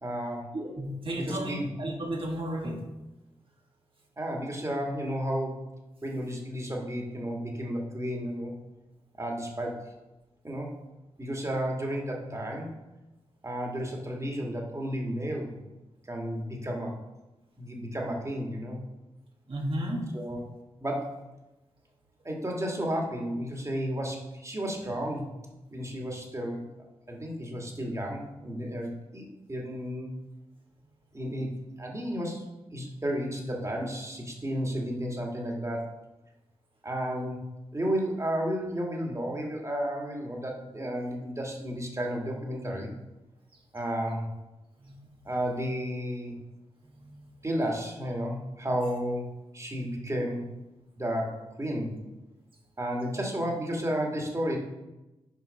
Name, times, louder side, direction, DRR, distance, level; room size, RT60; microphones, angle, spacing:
voice 1, 0.0-0.5 1.1-1.7 4.2-5.7 6.0-8.6 9.2-9.9 10.4-10.7 11.2-12.7 13.4-15.6 16.1-17.0 17.6-18.8 20.1-20.4 20.8-21.2 22.2-25.3 25.7-26.6 27.1-30.1 31.1-31.5 31.8-32.4 32.7-35.9 36.8-37.4 37.7-42.9 43.7-44.3 45.2-46.4 47.4-49.3 49.5-50.5 51.0-52.0 52.8-54.6, equal, 25° right, -1 dB, 2.2 m, -32 dB
voice 2, 0.5-2.8 19.5-20.1 44.8-45.2 46.9-47.3, right 1 dB, 50° right, 0 dB, 1.7 m, -34 dB
6.8 x 4.5 x 5.7 m, 1.0 s
cardioid pair, 45°, 12 cm